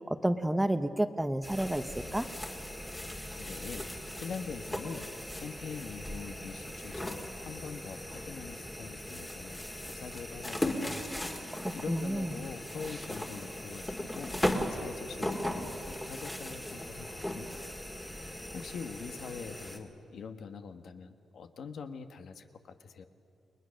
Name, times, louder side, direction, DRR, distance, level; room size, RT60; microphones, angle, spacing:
voice 1, 0.1-2.3 11.5-12.5, right 1 dB, 5° right, 10 dB, 0.7 m, -31 dB
sound 1, 1.4-19.8, left 1 dB, 10° left, 2.0 m, -38 dB
voice 2, 3.4-3.9 4.2-5.1 5.3-11.0 11.7-17.7 18.5-23.0, left 5 dB, 65° left, 8 dB, 1.3 m, -44 dB
29.5 x 20.5 x 6.5 m, 2.4 s
wide cardioid pair, 145°, 0 cm